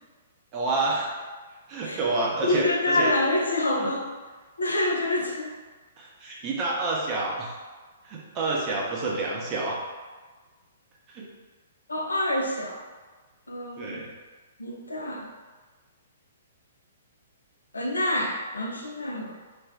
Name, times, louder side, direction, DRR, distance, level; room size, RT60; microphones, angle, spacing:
voice 1, 0.5-1.1 1.7-3.1 3.8-3.9 6.0-7.5 8.0-9.8 11.1-11.3 13.8-14.1, right 2 dB, 30° right, -4 dB, 0.6 m, -28 dB
voice 2, 2.4-4.1 4.6-5.5 11.9-12.8 13.5-14.1 14.6-15.3 17.7-19.3, left 2 dB, 75° left, 0 dB, 0.4 m, -27 dB
2.5 x 2.1 x 3.3 m, 1.3 s
figure-of-eight pair, 115°, 0 cm